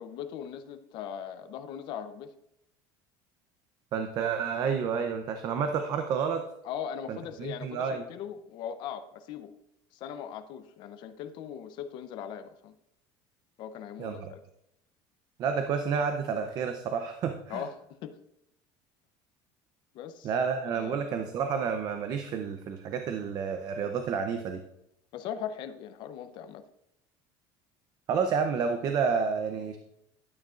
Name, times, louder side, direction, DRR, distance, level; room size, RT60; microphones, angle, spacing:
voice 1, 0.0-2.3 6.6-9.5 9.9-12.7 13.6-14.4 17.5-18.2 19.9-20.3 20.7-21.1 25.1-26.7, left 8 dB, 50° left, 9 dB, 0.7 m, -39 dB
voice 2, 3.9-6.4 7.1-8.0 14.0-14.3 15.4-17.6 20.2-24.6 28.1-29.8, right 6 dB, 40° right, 6 dB, 0.7 m, -30 dB
12.0 x 9.1 x 2.5 m, 0.79 s
cardioid pair, 160°, 10 cm